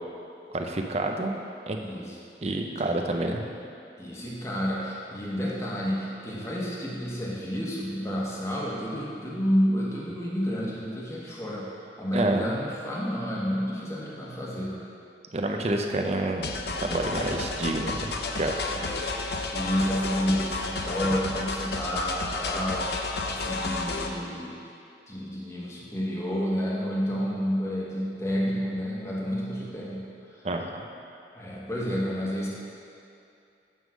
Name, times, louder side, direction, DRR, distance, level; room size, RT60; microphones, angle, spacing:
voice 1, 0.5-1.4 1.7-1.8 2.4-3.4 12.1-12.5 15.3-16.5 16.8-18.7 30.4-30.8, right 2 dB, 35° right, 3 dB, 0.6 m, -28 dB
voice 2, 1.8-2.2 4.0-11.7 12.0-14.8 18.7-19.1 19.5-24.5 25.1-30.4 31.3-32.5, equal, 15° left, -5 dB, 1.2 m, -30 dB
sound 1, 16.4-24.1, left 3 dB, 70° left, 0.6 m, -31 dB
9.4 x 3.7 x 6.3 m, 2.6 s
head